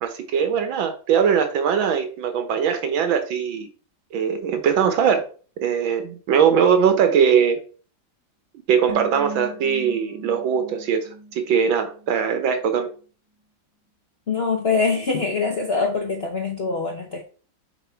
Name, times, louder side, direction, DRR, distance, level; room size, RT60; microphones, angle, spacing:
voice 1, 0.0-3.7 4.1-5.3 5.6-7.6 8.7-12.9, right 7 dB, 90° right, 1.8 m, -21 dB
sound 1, 8.9-12.2 12.4-12.5, right 2 dB, 40° right, 0.5 m, -38 dB
voice 2, 14.3-17.2, left 4 dB, 60° left, 0.6 m, -23 dB
6.6 x 3.1 x 4.6 m
omnidirectional pair, 2.1 m